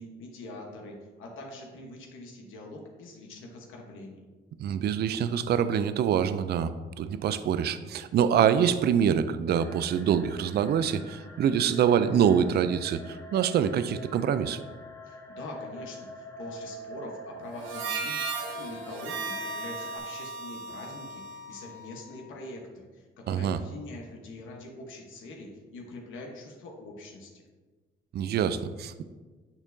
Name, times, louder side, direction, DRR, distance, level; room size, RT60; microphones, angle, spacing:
voice 1, 0.0-4.3 15.1-27.4, left 2 dB, 80° left, 0 dB, 1.1 m, -44 dB
voice 2, 4.6-6.7 7.0-14.6 23.3-23.6 28.1-29.0, right 8 dB, 55° right, 12 dB, 0.4 m, -25 dB
sound 1, 9.5-20.0, equal, 15° left, 0.9 m, -45 dB
Harmonica, 17.6-22.2, right 4 dB, 75° right, 0.9 m, -36 dB
8.8 x 4.3 x 2.7 m, 1.3 s
cardioid pair, 90°, 20 cm